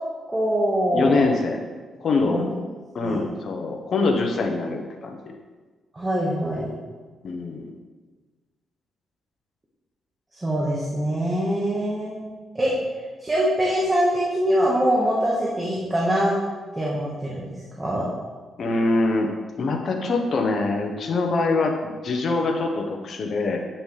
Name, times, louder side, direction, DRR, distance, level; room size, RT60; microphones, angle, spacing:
voice 1, 0.3-1.2 2.2-2.5 3.0-3.2 5.9-6.7 10.3-12.1 12.5-12.7 13.2-16.3 16.7-17.5 17.8-18.0, equal, 20° right, -5 dB, 1.6 m, -23 dB
voice 2, 0.9-1.6 2.0-2.5 2.9-5.3 7.2-7.7 18.6-23.6, left 3 dB, 55° left, 3 dB, 1.1 m, -24 dB
8.5 x 6.0 x 3.4 m, 1.4 s
cardioid pair, 90°, 0 cm